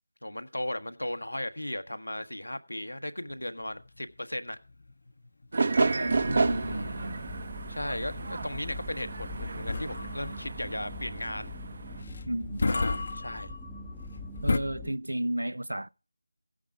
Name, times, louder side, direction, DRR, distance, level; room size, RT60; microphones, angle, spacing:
voice 1, 0.2-4.6 6.7-7.1 7.7-11.5 12.6-13.5, left 1 dB, 85° left, 1.2 m, -36 dB
sound 1, 3.3-14.6, left 3 dB, 45° left, 0.7 m, -35 dB
sound 2, 5.5-12.0, right 3 dB, 45° right, 1.0 m, -31 dB
voice 2, 5.6-7.2 12.3-12.7 14.4-15.9, right 1 dB, 80° right, 0.5 m, -33 dB
sound 3, 6.0-14.9, left 1 dB, ahead, 0.7 m, -42 dB
16.0 x 8.7 x 4.7 m
figure-of-eight pair, 165°, 0 cm